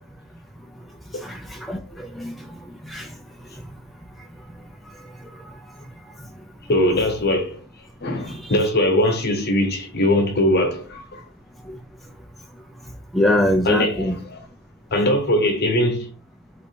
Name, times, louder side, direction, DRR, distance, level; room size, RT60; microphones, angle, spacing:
voice 1, 1.1-3.7 4.2-4.3 4.5-6.3 8.3-8.5 11.6-12.1 12.8-14.2, left 1 dB, ahead, 0.5 m, -27 dB
voice 2, 6.7-7.6 8.0-11.2 13.6-14.4 14.9-16.1, left 1 dB, 50° left, 0.9 m, -21 dB
4.3 x 2.8 x 4.4 m
head